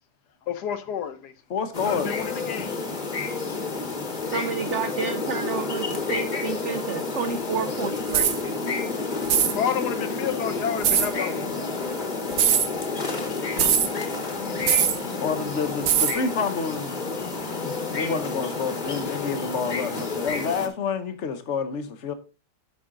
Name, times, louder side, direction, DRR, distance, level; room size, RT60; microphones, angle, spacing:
voice 1, 0.5-1.3 1.8-2.8 9.5-11.8 14.4-15.2, left 8 dB, 70° left, 1.3 m, -31 dB
voice 2, 1.5-2.2 6.7-7.0 13.6-13.7 15.1-22.1, left 5 dB, 50° left, 1.0 m, -29 dB
sound 1, 1.7-20.7, left 4 dB, 30° left, 1.1 m, -30 dB
voice 3, 4.3-8.6, right 6 dB, 70° right, 0.6 m, -30 dB
sound 2, 8.1-8.4 9.2-9.6 10.8-11.1 12.3-12.7 13.6-13.9 14.7-15.0 15.9-16.2, right 9 dB, 85° right, 1.6 m, -21 dB
8.6 x 5.4 x 3.7 m
omnidirectional pair, 1.9 m